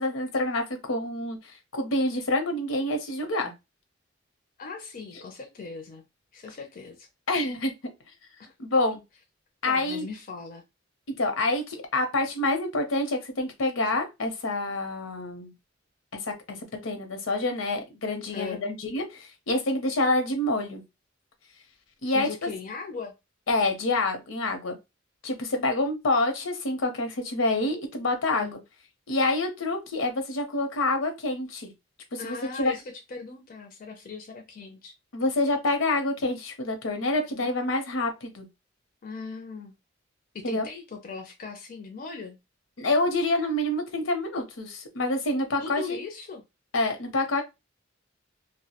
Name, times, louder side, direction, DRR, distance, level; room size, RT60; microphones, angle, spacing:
voice 1, 0.0-3.5 7.3-7.7 8.6-9.0 9.6-10.1 11.2-15.5 16.1-16.6 16.8-20.8 22.0-22.3 23.5-24.8 25.2-28.5 29.1-31.7 32.1-32.7 35.1-38.5 40.4-40.6 42.8-46.0 46.7-47.4, left 2 dB, 85° left, 0.7 m, -27 dB
voice 2, 4.6-6.0 6.3-7.1 9.7-10.6 18.3-18.7 22.1-23.1 28.4-28.6 32.2-34.9 37.3-37.5 39.0-39.7 40.3-42.4 45.6-46.4, left 4 dB, 45° left, 0.4 m, -39 dB
2.2 x 2.0 x 2.8 m
head